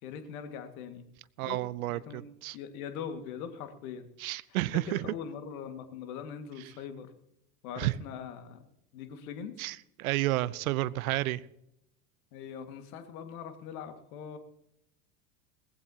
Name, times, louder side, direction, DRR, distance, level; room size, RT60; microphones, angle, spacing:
voice 1, 0.0-1.1 1.5-1.6 1.9-4.1 4.9-7.1 7.6-8.6 8.9-9.6 12.3-14.4, left 7 dB, 60° left, 8 dB, 2.2 m, -42 dB
voice 2, 1.4-2.6 4.2-5.1 7.8-7.9 9.6-11.4, right 18 dB, 60° right, 19 dB, 0.8 m, -31 dB
20.0 x 15.0 x 2.9 m, 0.79 s
figure-of-eight pair, 85°, 49 cm